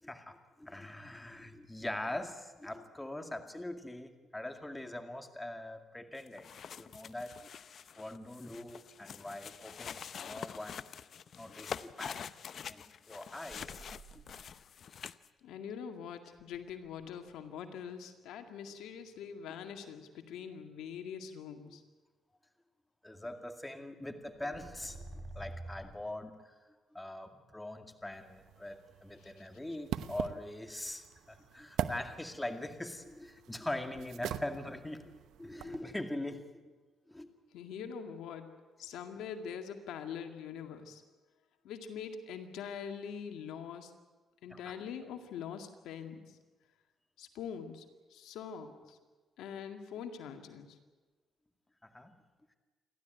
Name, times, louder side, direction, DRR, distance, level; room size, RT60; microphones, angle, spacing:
voice 1, 0.0-6.5 6.8-7.5 8.0-10.9 11.4-12.3 12.7-13.9 14.1-14.2 14.9-15.1 19.5-19.6 21.6-21.8 23.0-25.0 25.3-26.6 26.9-36.6 37.1-37.3 44.5-44.8 51.8-52.1, left 1 dB, 10° left, 6 dB, 2.2 m, -42 dB
sound 1, 6.2-15.3, left 7 dB, 55° left, 0.7 m, -46 dB
sound 2, 13.5-14.7 16.4-17.3 24.2-25.9, right 2 dB, 40° right, 5.3 m, -48 dB
voice 2, 15.4-21.8 29.2-29.3 37.5-38.5 38.8-41.0 41.6-43.9 44.4-46.2 47.2-47.8 48.1-49.0 49.4-50.8, left 7 dB, 85° left, 6 dB, 2.1 m, -43 dB
sound 3, 28.1-35.8, right 10 dB, 80° right, 0.9 m, -43 dB
28.5 x 12.5 x 9.2 m, 1.3 s
cardioid pair, 90°, 0 cm